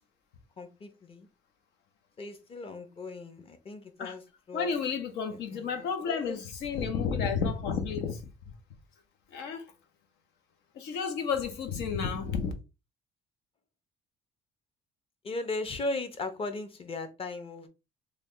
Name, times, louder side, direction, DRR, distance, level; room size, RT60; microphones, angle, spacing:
voice 1, 0.6-1.3 2.2-4.7 5.3-6.4 15.2-17.7, left 2 dB, 35° left, 0.7 m, -37 dB
voice 2, 4.5-8.2 9.3-9.6 10.7-12.5, left 6 dB, 80° left, 0.8 m, -31 dB
3.3 x 2.3 x 3.8 m
cardioid pair, 110°, 17 cm